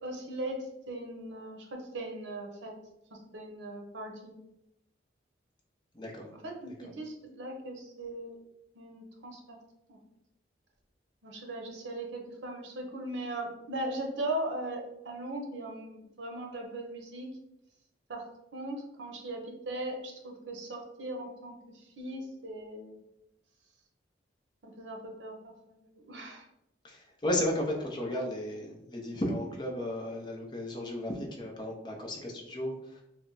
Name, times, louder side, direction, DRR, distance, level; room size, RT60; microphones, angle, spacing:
voice 1, 0.0-2.7 3.1-4.4 6.4-8.4 8.7-9.6 9.9-10.0 11.2-17.3 18.1-23.0 24.6-25.8 26.1-26.5, right 1 dB, 85° right, 2 dB, 0.7 m, -39 dB
voice 2, 5.9-6.3 26.8-33.0, left 1 dB, 25° left, 0 dB, 0.6 m, -34 dB
3.3 x 2.1 x 3.9 m, 0.85 s
head